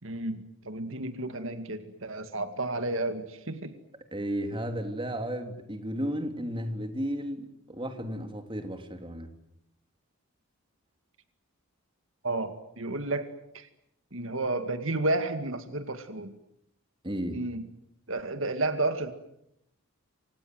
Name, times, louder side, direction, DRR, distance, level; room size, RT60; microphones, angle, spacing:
voice 1, 0.0-3.7 12.2-13.7 14.1-16.3 17.3-17.7 18.1-19.1, right 2 dB, 70° right, 9 dB, 2.2 m, -32 dB
voice 2, 4.1-9.3 17.0-17.4, equal, 25° right, 6 dB, 3.1 m, -33 dB
28.5 x 26.0 x 7.9 m, 0.77 s
head